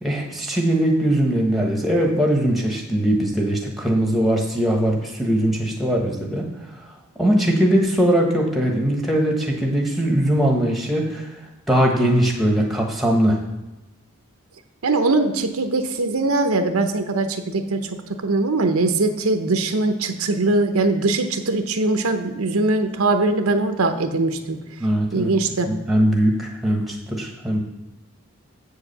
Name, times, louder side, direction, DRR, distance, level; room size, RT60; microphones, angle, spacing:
voice 1, 0.0-6.4 7.2-11.3 11.7-13.4 24.8-25.3 25.7-27.6, right 1 dB, ahead, 0 dB, 1.2 m, -20 dB
voice 2, 14.8-17.8 18.2-24.6 25.1-25.7, right 2 dB, 85° right, 6 dB, 0.8 m, -21 dB
7.9 x 4.8 x 6.7 m, 1.0 s
head